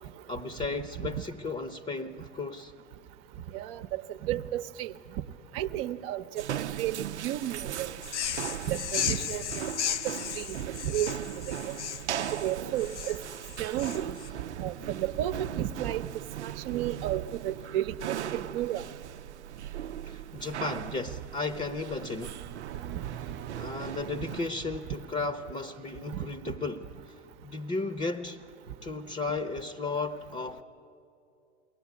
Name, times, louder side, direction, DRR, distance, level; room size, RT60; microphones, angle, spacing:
voice 1, 0.3-2.7 8.3-8.4 20.1-22.4 23.5-27.2 27.4-28.4 28.8-30.6, left 3 dB, 20° left, 11 dB, 0.9 m, -34 dB
voice 2, 3.5-4.9 5.5-8.0 8.7-9.9 10.3-10.6 10.8-11.7 12.2-13.2 13.6-14.2 14.6-16.1 16.4-18.8 22.9-23.0 26.1-26.3, right 12 dB, 55° right, 9 dB, 0.9 m, -33 dB
sound 1, 6.4-24.4, right 10 dB, 80° right, 0.6 m, -39 dB
sound 2, 8.0-14.3, left 10 dB, 80° left, 0.6 m, -35 dB
sound 3, 22.0-25.8, right 12 dB, 30° right, 0.6 m, -47 dB
22.5 x 17.5 x 9.6 m, 2.6 s
figure-of-eight pair, 80°, 34 cm